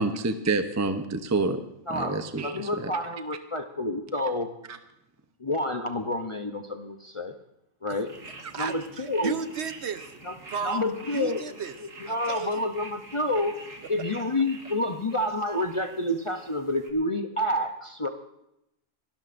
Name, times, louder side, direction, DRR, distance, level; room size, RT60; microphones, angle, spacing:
voice 1, 0.0-1.6 1.9-2.9, right 3 dB, 20° right, 8 dB, 0.5 m, -27 dB
voice 2, 1.9-4.5 5.4-7.3 7.8-8.1 8.6-9.4 10.2-10.3 10.6-11.4 11.8-13.6 13.9-18.1, left 1 dB, 30° left, 5 dB, 0.7 m, -29 dB
sound 1, 8.0-16.9, right 2 dB, 85° right, 2.2 m, -47 dB
voice 3, 8.4-10.2 10.5-11.8 12.1-12.7, right 6 dB, 60° right, 10 dB, 1.0 m, -35 dB
28.0 x 12.5 x 2.6 m, 0.82 s
omnidirectional pair, 1.3 m